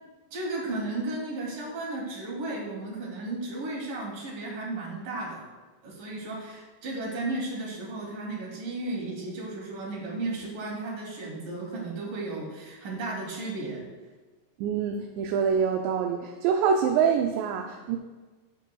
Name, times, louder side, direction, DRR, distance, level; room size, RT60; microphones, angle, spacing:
voice 1, 0.3-5.4 5.8-13.8, right 2 dB, 50° right, -3 dB, 4.1 m, -34 dB
voice 2, 14.6-18.0, right 7 dB, 80° right, 3 dB, 2.8 m, -25 dB
15.5 x 9.3 x 2.3 m, 1.3 s
omnidirectional pair, 5.1 m